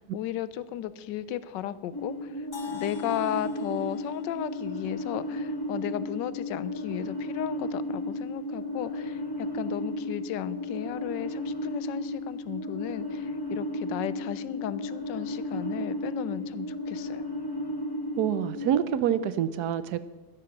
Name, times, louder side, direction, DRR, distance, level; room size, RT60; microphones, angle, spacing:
voice 1, 0.0-17.3, left 11 dB, 75° left, 16 dB, 1.2 m, -35 dB
sound 1, 1.9-18.7, left 1 dB, 15° left, 0.8 m, -34 dB
sound 2, 2.5-6.4, left 6 dB, 50° left, 0.6 m, -47 dB
voice 2, 18.2-20.0, right 9 dB, 70° right, 14 dB, 0.9 m, -26 dB
12.5 x 11.0 x 5.8 m, 1.3 s
omnidirectional pair, 2.2 m